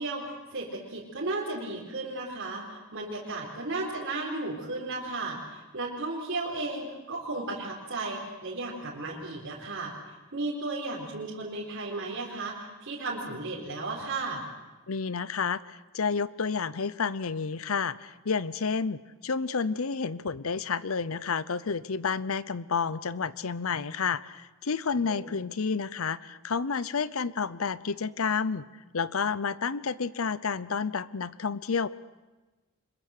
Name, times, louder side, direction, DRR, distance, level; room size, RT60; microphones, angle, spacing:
voice 1, 0.0-9.9 10.3-14.4 25.1-25.3, right 2 dB, 65° right, -5 dB, 4.3 m, -34 dB
voice 2, 14.9-28.7 28.9-31.9, left 5 dB, 75° left, 17 dB, 0.7 m, -30 dB
25.0 x 22.0 x 6.6 m, 1.2 s
head